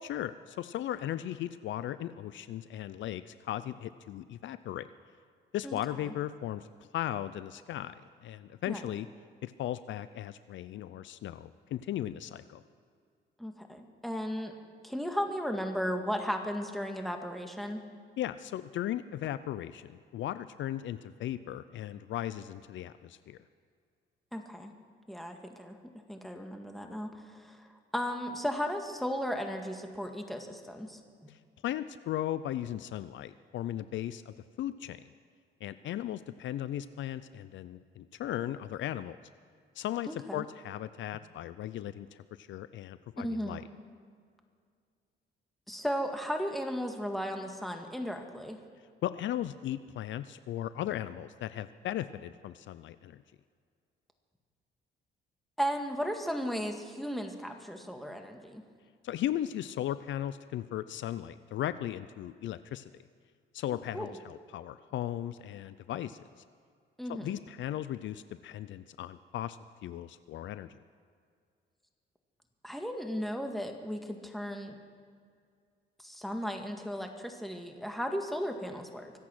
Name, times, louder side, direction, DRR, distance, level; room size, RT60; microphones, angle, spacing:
voice 1, 0.0-4.9 5.5-6.7 6.9-7.9 8.2-9.1 9.4-12.6 18.2-23.4 31.6-35.0 35.6-39.2 39.8-42.1 42.4-43.6 49.0-53.2 59.0-62.9 63.5-66.3 67.1-70.8, left 12 dB, 70° left, 14 dB, 0.5 m, -37 dB
voice 2, 5.6-6.1 8.7-8.8 13.4-14.5 14.8-17.8 24.3-24.7 25.1-25.8 26.1-31.0 40.1-40.4 43.2-43.6 45.7-48.6 55.6-58.6 63.9-64.1 67.0-67.3 72.6-74.8 76.0-79.1, equal, ahead, 4 dB, 1.9 m, -35 dB
25.0 x 8.4 x 6.2 m, 2.2 s
cardioid pair, 90°, 20 cm